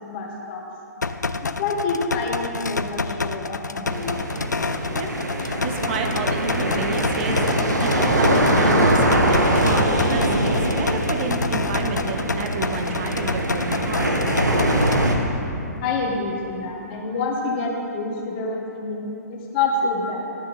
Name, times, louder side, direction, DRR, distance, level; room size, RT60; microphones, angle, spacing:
voice 1, 0.1-0.6 1.6-4.2 15.8-20.2, left 3 dB, 35° left, -1 dB, 1.8 m, -27 dB
sound 1, 1.0-15.0, left 3 dB, 80° left, 0.4 m, -28 dB
sound 2, 3.9-15.1, right 1 dB, 75° right, 1.3 m, -22 dB
voice 2, 5.4-14.2, right 4 dB, 40° right, 5 dB, 0.9 m, -30 dB
12.0 x 6.3 x 5.5 m, 2.9 s
figure-of-eight pair, 120°, 9 cm